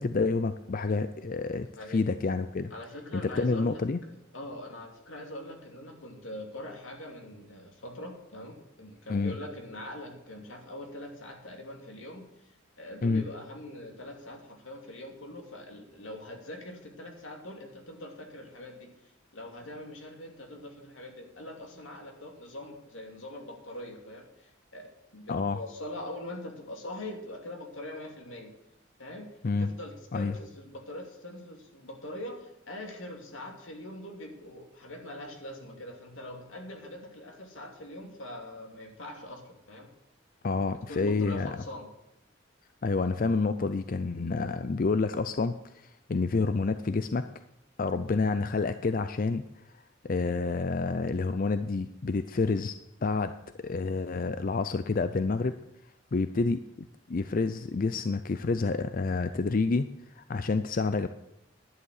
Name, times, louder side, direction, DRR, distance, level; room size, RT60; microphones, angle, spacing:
voice 1, 0.0-2.7 3.1-4.0 9.1-9.3 13.0-13.2 25.3-25.6 29.4-29.7 30.1-30.3 40.4-41.6 42.8-47.2 47.8-49.4 50.0-52.8 53.0-53.3 53.6-55.6 56.1-59.9 60.2-61.1, left 3 dB, 45° left, 11 dB, 0.5 m, -28 dB
voice 2, 2.7-12.3 12.8-18.9 19.3-28.5 29.0-29.3 29.6-39.9 40.9-41.9, left 1 dB, 85° left, 2 dB, 2.8 m, -43 dB
11.0 x 9.8 x 6.5 m, 0.85 s
head